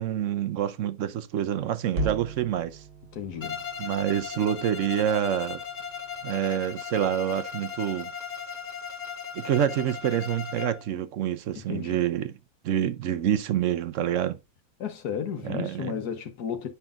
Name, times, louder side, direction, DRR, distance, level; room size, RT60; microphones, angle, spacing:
voice 1, 0.0-2.8 3.8-5.6 6.2-8.1 9.3-12.3 12.6-14.4 15.4-15.9, right 10 dB, 65° right, 0.8 m, -27 dB
sound 1, 1.9-6.3, right 2 dB, 40° right, 1.2 m, -38 dB
voice 2, 3.1-3.6 11.7-12.0 14.8-16.7, left 8 dB, 80° left, 1.5 m, -33 dB
Bowed string instrument, 3.4-10.9, left 7 dB, 40° left, 0.6 m, -37 dB
9.7 x 5.6 x 2.4 m
omnidirectional pair, 1.7 m